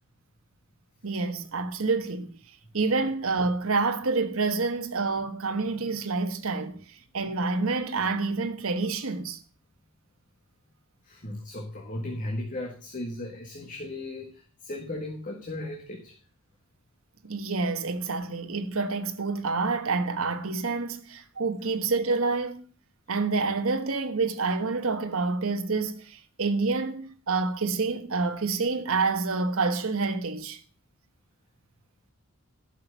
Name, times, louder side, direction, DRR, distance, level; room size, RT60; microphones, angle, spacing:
voice 1, 1.0-2.3 2.7-6.8 7.1-9.4 17.2-22.6 23.1-30.6, right 3 dB, 70° right, 1.3 m, -28 dB
voice 2, 5.5-6.0 11.0-16.2, left 1 dB, 40° left, 1.8 m, -36 dB
11.5 x 6.2 x 6.8 m
head